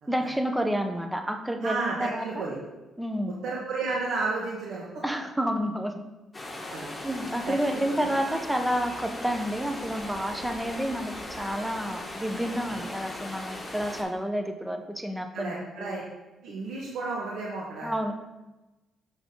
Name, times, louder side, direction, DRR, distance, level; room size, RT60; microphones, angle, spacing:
voice 1, 0.1-2.4 3.0-3.4 5.0-6.1 7.0-16.0 17.8-18.1, equal, 5° right, 5 dB, 0.7 m, -30 dB
voice 2, 1.6-2.6 3.4-5.0 6.7-6.9 7.5-8.4 12.7-12.8 15.3-16.0 16.4-17.9, right 3 dB, 75° right, -3 dB, 1.2 m, -33 dB
sound 1, 6.3-14.0, left 1 dB, 20° left, 1.5 m, -38 dB
6.2 x 5.5 x 3.7 m, 1.1 s
cardioid pair, 90°, 0 cm